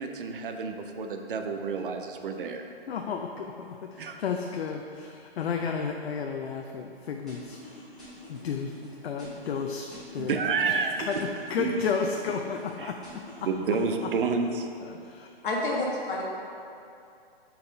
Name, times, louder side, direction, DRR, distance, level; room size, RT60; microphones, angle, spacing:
voice 1, 0.0-2.7 4.0-4.2 10.2-11.1 11.6-11.8 12.8-12.9 13.5-14.7, right 5 dB, 55° right, 5 dB, 0.6 m, -29 dB
voice 2, 2.9-7.6 8.3-8.7 9.0-9.9 10.1-10.3 11.1-13.2 14.9-15.3, left 6 dB, 75° left, 3 dB, 0.5 m, -32 dB
sound 1, 7.3-8.9 9.2-10.8 11.1-12.7 13.0-14.6, left 1 dB, ahead, 1.6 m, -47 dB
voice 3, 15.4-16.2, left 2 dB, 55° left, -3 dB, 1.5 m, -28 dB
5.8 x 4.3 x 5.1 m, 2.5 s
hypercardioid pair, 165°, 31 cm